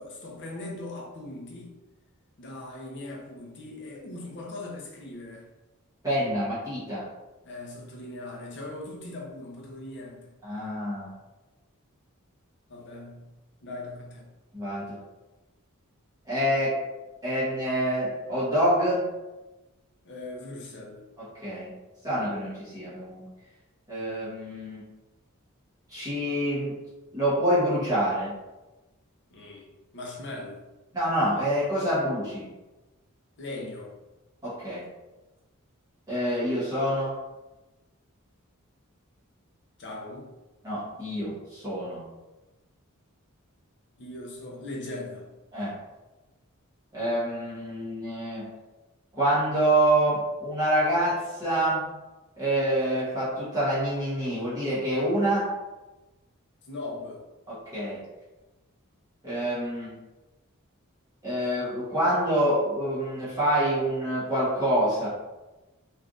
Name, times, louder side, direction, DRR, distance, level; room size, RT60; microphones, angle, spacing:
voice 1, 0.0-1.7 2.4-5.5 7.4-10.3 12.7-13.3 13.6-14.3 20.0-21.0 29.3-30.6 33.4-33.9 39.8-40.3 44.0-45.3 56.6-57.2, left 2 dB, 55° left, -1 dB, 0.7 m, -39 dB
voice 2, 6.0-7.1 10.4-11.1 14.5-15.0 16.2-16.8 17.2-19.0 21.2-21.7 22.0-23.3 23.9-24.8 25.9-26.7 27.1-28.3 30.9-32.5 34.4-34.8 36.1-37.2 40.6-42.0 45.5-45.8 46.9-48.5 49.1-51.9 52.4-55.5 57.5-58.0 59.2-60.0 61.2-65.1, right 1 dB, 15° right, -11 dB, 1.1 m, -26 dB
3.4 x 2.6 x 2.4 m, 1.1 s
head